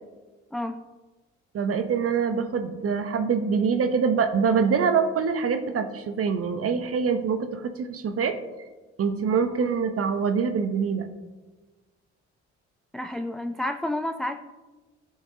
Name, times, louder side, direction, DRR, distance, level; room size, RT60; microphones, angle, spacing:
voice 1, 0.5-0.8 12.9-14.4, left 1 dB, ahead, 6 dB, 0.4 m, -30 dB
voice 2, 1.5-8.3 9.0-11.1, right 6 dB, 40° right, 8 dB, 0.8 m, -25 dB
13.0 x 4.7 x 2.8 m, 1.2 s
hypercardioid pair, 45°, 34 cm